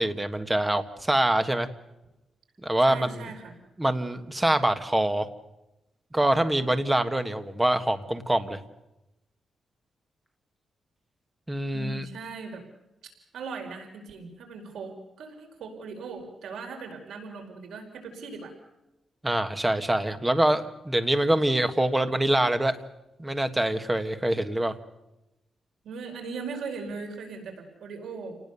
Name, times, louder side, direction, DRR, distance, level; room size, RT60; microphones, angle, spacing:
voice 1, 0.0-1.7 2.6-3.2 3.8-5.3 6.1-8.6 11.5-12.0 19.2-22.7 23.2-24.7, right 1 dB, 10° right, 9 dB, 1.5 m, -25 dB
voice 2, 2.8-3.5 11.7-12.6 13.3-18.5 25.8-28.4, right 4 dB, 85° right, 4 dB, 4.9 m, -39 dB
29.5 x 19.5 x 6.9 m, 0.94 s
wide cardioid pair, 170°, 0 cm